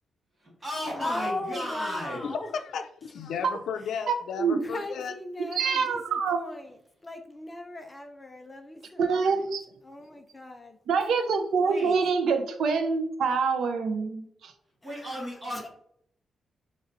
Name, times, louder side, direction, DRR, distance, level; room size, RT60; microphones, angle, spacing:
voice 1, 0.4-2.3 11.6-12.0 14.8-15.7, equal, 25° right, -3 dB, 1.6 m, -35 dB
voice 2, 1.0-2.5 4.6-6.8 7.0-9.4 9.8-10.8 14.8-15.2 15.5-15.7, left 2 dB, 15° left, 4 dB, 0.4 m, -38 dB
voice 3, 2.2-5.1, left 6 dB, 80° left, 8 dB, 0.4 m, -34 dB
voice 4, 4.1-4.6 5.6-6.4 9.0-9.6 10.9-14.5, right 5 dB, 75° right, 7 dB, 0.5 m, -26 dB
5.2 x 3.1 x 2.6 m, 0.68 s
wide cardioid pair, 165°, 0 cm